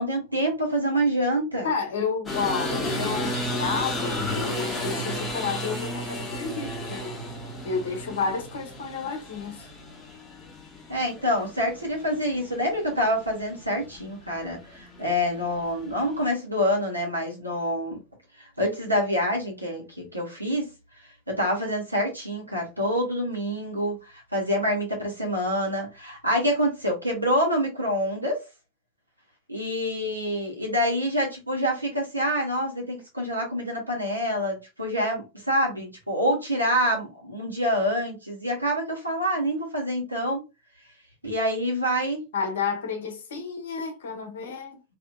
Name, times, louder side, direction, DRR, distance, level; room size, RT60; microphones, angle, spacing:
voice 1, 0.0-1.7 10.9-18.0 18.4-20.7 21.3-28.4 29.5-40.4 41.2-42.2, equal, 85° right, 1.1 m, -26 dB
voice 2, 1.6-7.1 7.6-9.7 42.3-44.8, left 5 dB, 60° left, 0.7 m, -31 dB
sound 1, 2.3-16.2, left 1 dB, 15° left, 0.9 m, -34 dB
2.8 x 2.7 x 2.2 m
figure-of-eight pair, 90°, 0 cm